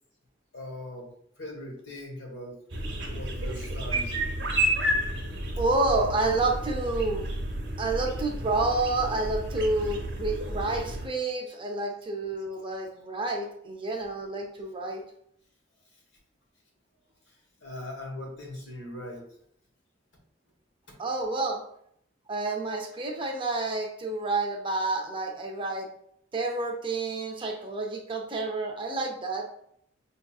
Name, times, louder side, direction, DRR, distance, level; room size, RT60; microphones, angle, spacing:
voice 1, 0.5-1.1 1.4-2.6 2.8-4.1 17.6-19.3, left 1 dB, 70° left, -1 dB, 1.2 m, -40 dB
sound 1, 2.7-11.1, right 1 dB, 70° right, 0.8 m, -31 dB
voice 2, 5.6-7.3 7.8-15.0 21.0-21.6 22.3-25.9 26.3-29.5, right 2 dB, 25° right, 2 dB, 0.5 m, -29 dB
5.4 x 2.6 x 2.3 m, 0.68 s
head